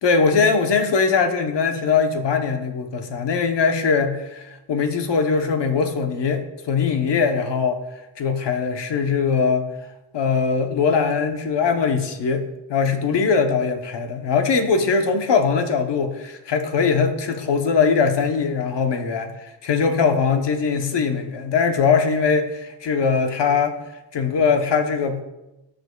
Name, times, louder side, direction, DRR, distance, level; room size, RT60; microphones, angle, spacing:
voice 1, 0.0-7.8 8.2-9.7 10.1-23.8 24.1-25.2, left 5 dB, 70° left, 6 dB, 0.9 m, -21 dB
14.5 x 5.2 x 2.3 m, 0.99 s
wide cardioid pair, 110°, 44 cm